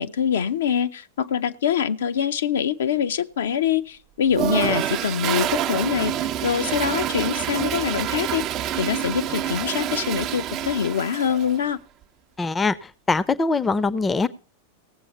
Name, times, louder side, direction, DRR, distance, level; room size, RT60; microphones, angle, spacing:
voice 1, 0.0-6.1 6.4-8.4 8.8-11.8, left 8 dB, 65° left, 9 dB, 0.7 m, -24 dB
Toilet flush, 4.3-11.6, right 10 dB, 35° right, 0.6 m, -27 dB
voice 2, 12.4-14.3, left 3 dB, 15° left, 18 dB, 0.7 m, -23 dB
17.5 x 7.6 x 5.4 m, 0.38 s
figure-of-eight pair, 90°, 0 cm